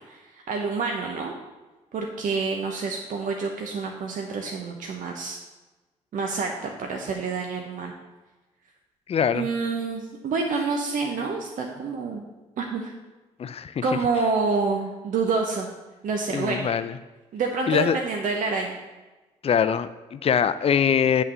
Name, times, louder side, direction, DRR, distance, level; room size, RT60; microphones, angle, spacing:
voice 1, 0.1-1.3 1.9-5.4 6.1-7.9 9.3-12.2 12.6-12.9 13.8-15.7 16.0-16.7 17.3-18.8, right 4 dB, 55° right, 1 dB, 0.8 m, -28 dB
voice 2, 9.1-9.5 13.4-13.7 16.3-16.9 17.7-18.0 19.4-21.2, left 7 dB, 40° left, 13 dB, 0.5 m, -23 dB
8.6 x 3.3 x 5.6 m, 1.2 s
hypercardioid pair, 40°, 16 cm